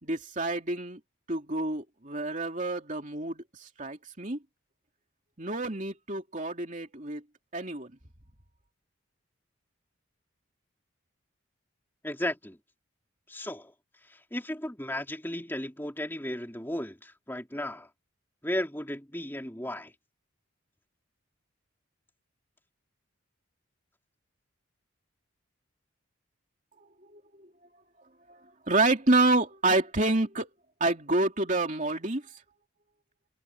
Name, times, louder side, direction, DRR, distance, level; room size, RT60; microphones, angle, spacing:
voice 1, 0.0-1.0 1.3-4.4 5.4-7.2 7.5-7.9 27.1-27.5 28.3-28.4 28.7-30.5 30.8-32.2, right 2 dB, 35° right, 3.1 m, -28 dB
voice 2, 12.0-12.6 13.3-13.7 14.0-17.9 18.4-19.9, left 1 dB, 10° left, 3.1 m, -35 dB
head